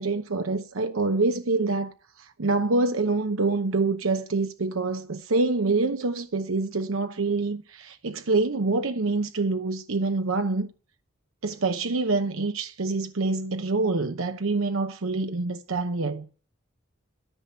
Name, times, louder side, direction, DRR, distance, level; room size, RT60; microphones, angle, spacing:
voice 1, 0.0-1.9 2.2-10.7 11.4-16.3, right 3 dB, 85° right, 0.9 m, -26 dB
13.5 x 6.0 x 9.2 m
head